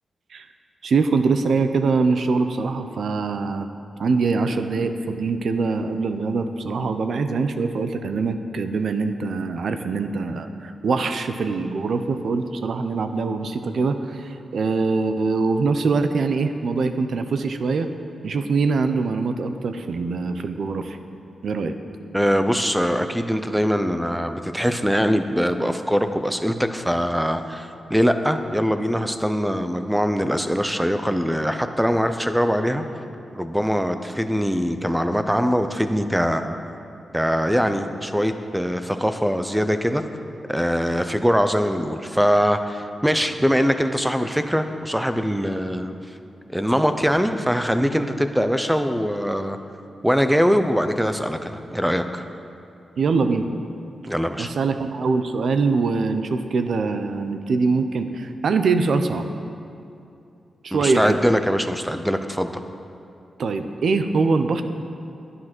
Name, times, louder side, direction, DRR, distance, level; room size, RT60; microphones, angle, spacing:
voice 1, 0.8-3.7 4.0-17.9 18.2-21.0 21.4-21.8 53.0-53.5 54.4-59.3 60.6-61.2 63.4-64.6, right 4 dB, 60° right, 8 dB, 0.7 m, -23 dB
voice 2, 22.1-32.8 33.3-36.6 37.1-40.0 40.5-45.9 46.5-49.6 50.0-52.2 54.1-54.5 60.7-62.6, equal, ahead, 8 dB, 0.5 m, -22 dB
11.0 x 10.0 x 6.1 m, 2.7 s
wide cardioid pair, 165°, 0 cm